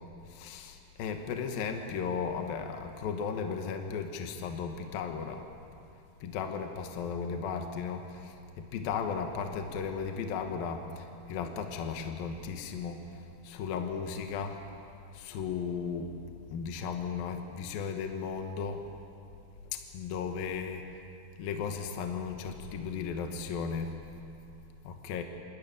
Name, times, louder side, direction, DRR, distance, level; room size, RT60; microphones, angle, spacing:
voice 1, 0.3-5.4 6.2-14.6 15.1-16.1 16.5-18.9 19.7-21.0 21.4-24.0 24.8-25.2, left 6 dB, 65° left, 5 dB, 2.6 m, -35 dB
26.0 x 14.0 x 8.9 m, 2.6 s
omnidirectional pair, 5.2 m